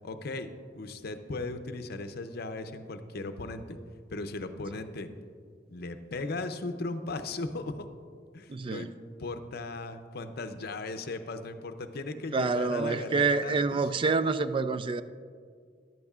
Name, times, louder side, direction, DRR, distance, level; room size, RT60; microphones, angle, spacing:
voice 1, 0.0-3.8 4.1-5.1 5.7-7.9 8.3-8.9 9.2-13.9, left 2 dB, 60° left, 0.6 m, -37 dB
voice 2, 8.5-8.9 12.3-15.0, right 4 dB, 30° right, 0.3 m, -27 dB
14.0 x 11.0 x 2.4 m
head